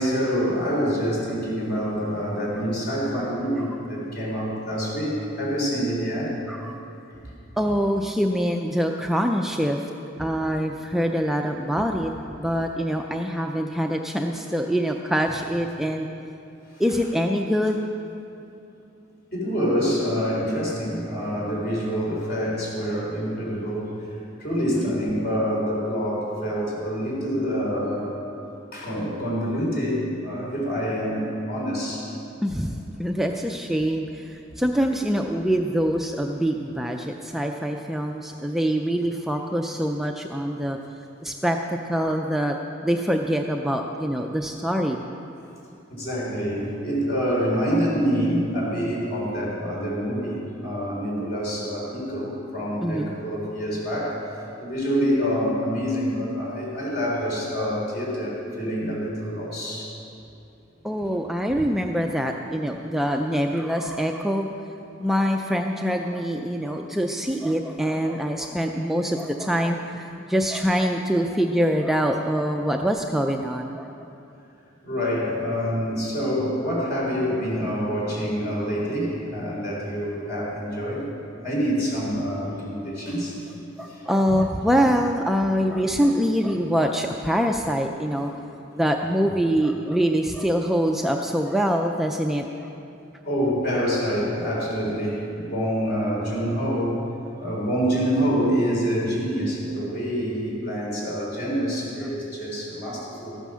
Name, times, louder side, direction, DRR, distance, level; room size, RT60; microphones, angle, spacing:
voice 1, 0.0-6.4 7.2-7.3 10.2-10.3 14.3-14.4 16.7-16.8 19.3-23.9 24.4-28.1 28.7-32.1 45.9-54.2 54.6-59.9 74.8-81.0 81.4-83.4 83.9-84.4 93.2-97.0 97.4-103.4, equal, 50° left, -4 dB, 3.8 m, -26 dB
voice 2, 6.5-6.8 7.6-9.9 10.2-12.1 12.4-16.1 16.8-17.8 24.7-25.0 32.4-40.8 41.2-42.6 42.8-45.0 52.8-53.2 60.8-64.5 65.0-74.1 83.8-88.3 88.7-92.7, equal, ahead, 2 dB, 0.4 m, -24 dB
14.0 x 9.1 x 6.2 m, 2.7 s
head